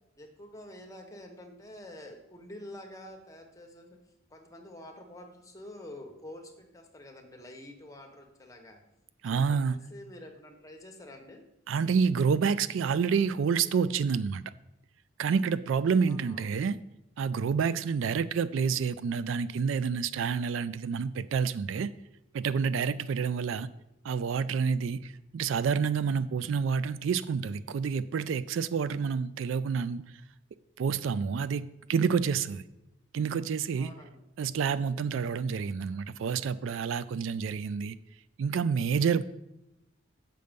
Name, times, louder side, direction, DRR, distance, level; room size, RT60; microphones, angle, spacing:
voice 1, 0.2-4.0 4.3-8.8 9.2-11.4 16.1-16.7 33.8-34.2, left 1 dB, 15° left, 2 dB, 1.1 m, -48 dB
voice 2, 9.2-9.8 11.7-14.4 15.2-16.8 17.2-21.9 22.3-23.7 24.0-30.0 30.8-32.6 33.1-33.9 34.4-37.9 38.4-39.2, right 6 dB, 65° right, 16 dB, 0.3 m, -28 dB
7.7 x 6.7 x 5.2 m, 0.89 s
head